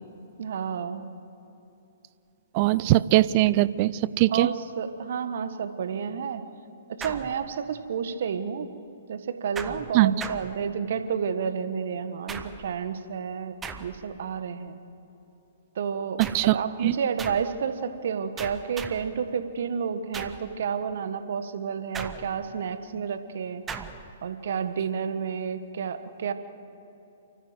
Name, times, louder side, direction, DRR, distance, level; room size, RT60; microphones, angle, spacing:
voice 1, 0.4-1.1 4.3-6.4 7.0-8.7 9.1-14.8 15.7-23.6 24.2-26.3, right 6 dB, 60° right, 10 dB, 1.5 m, -30 dB
voice 2, 2.5-4.5 9.9-10.1 16.2-16.6 16.8-16.9, right 17 dB, 40° right, 19 dB, 0.6 m, -21 dB
sound 1, 7.0-7.9 9.6-11.1 12.3-12.8 13.6-14.2 16.2-16.6 17.2-17.6 18.4-19.2 20.1-20.5 21.9-22.6 23.7-24.1, right 6 dB, 15° right, 1.3 m, -39 dB
29.5 x 14.5 x 7.9 m, 2.9 s
figure-of-eight pair, 120°, 0 cm